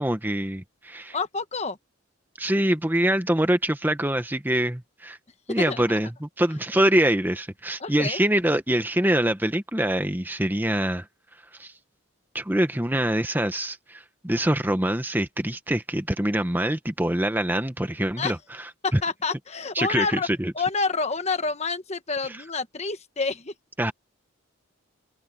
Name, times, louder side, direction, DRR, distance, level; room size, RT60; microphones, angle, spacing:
voice 1, 0.0-1.2 2.4-5.2 5.5-11.1 11.6-11.7 12.3-18.4 18.9-19.0 19.7-20.5 22.2-22.4 23.8-23.9, right 1 dB, 10° right, 1.1 m, -24 dB
voice 2, 1.1-1.8 5.6-5.8 7.8-8.2 18.2-18.3 18.8-20.3 20.5-23.5, left 4 dB, 30° left, 1.2 m, -28 dB
head